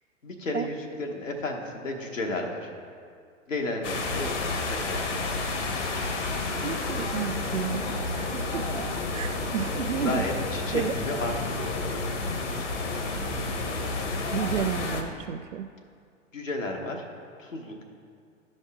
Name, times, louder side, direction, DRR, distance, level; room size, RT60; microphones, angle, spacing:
voice 1, 0.2-2.7 3.5-4.3 4.7-5.1 9.9-12.0 16.3-17.0 17.4-17.8, left 2 dB, 90° left, 0 dB, 1.2 m, -32 dB
sound 1, 3.8-15.0, left 3 dB, 70° left, 1.2 m, -30 dB
voice 2, 6.6-7.9 8.1-8.8 9.1-10.2 10.7-10.9 14.3-15.7, right 9 dB, 80° right, 11 dB, 0.6 m, -31 dB
13.0 x 5.3 x 3.6 m, 2.2 s
figure-of-eight pair, 100°, 38 cm